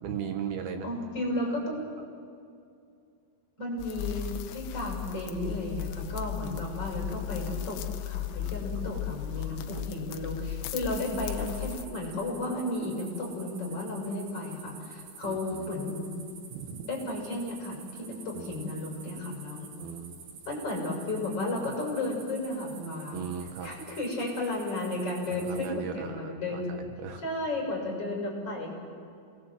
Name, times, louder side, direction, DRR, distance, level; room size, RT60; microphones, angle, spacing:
voice 1, 0.0-0.9 8.4-8.7 9.4-9.8 15.2-15.7 16.5-16.9 18.3-18.7 19.8-20.2 23.1-23.7 25.3-27.2, right 7 dB, 70° right, 5 dB, 3.0 m, -38 dB
voice 2, 0.8-1.9 3.6-16.1 16.8-19.7 20.5-23.2 23.6-26.7 27.2-28.7, left 2 dB, 35° left, -1 dB, 7.4 m, -33 dB
sound 1, 3.8-11.9, left 11 dB, 85° left, 3.0 m, -36 dB
sound 2, 11.0-25.7, right 6 dB, 55° right, 3.2 m, -49 dB
28.5 x 20.0 x 7.7 m, 2.5 s
omnidirectional pair, 4.7 m